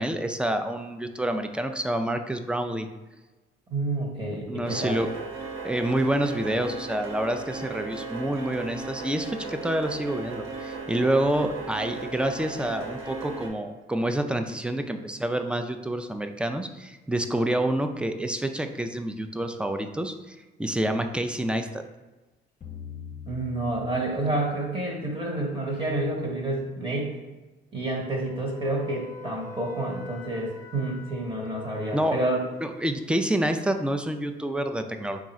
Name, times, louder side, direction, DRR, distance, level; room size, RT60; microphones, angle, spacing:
voice 1, 0.0-2.9 4.5-5.1 5.6-21.8 31.9-32.2 32.6-35.2, right 1 dB, 5° right, 6 dB, 0.3 m, -28 dB
voice 2, 3.7-5.0 23.3-27.2 27.7-32.4, right 2 dB, 25° right, -1 dB, 1.1 m, -29 dB
sound 1, 4.6-13.5, right 3 dB, 90° right, 0.8 m, -36 dB
sound 2, 22.6-25.7, left 7 dB, 40° left, 0.6 m, -44 dB
Wind instrument woodwind instrument, 28.2-33.0, left 2 dB, 15° left, 0.8 m, -43 dB
3.6 x 2.4 x 4.1 m, 1.2 s
cardioid pair, 90°, 20 cm